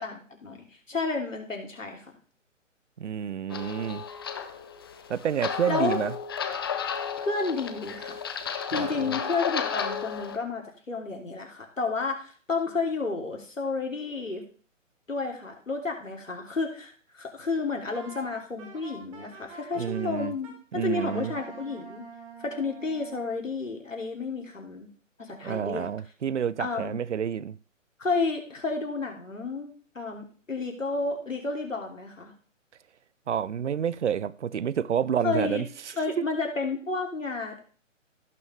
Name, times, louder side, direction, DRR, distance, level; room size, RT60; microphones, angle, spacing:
voice 1, 0.0-2.1 5.7-6.0 7.2-8.2 8.7-14.4 15.1-22.1 22.4-24.9 25.2-25.9 26.6-27.0 28.0-32.3 35.2-35.6 36.0-37.6, left 4 dB, 75° left, 3.2 m, -31 dB
voice 2, 3.0-4.0 5.1-6.1 8.8-9.2 19.8-20.3 20.7-21.3 25.4-27.5 33.3-35.7 36.2-36.3, right 8 dB, 65° right, 0.6 m, -29 dB
sound 1, 3.5-10.4, left 7 dB, 20° left, 0.6 m, -33 dB
Wind instrument woodwind instrument, 17.9-20.5 20.9-23.3, right 4 dB, 25° right, 2.3 m, -46 dB
17.0 x 6.1 x 3.3 m
figure-of-eight pair, 135°, 38 cm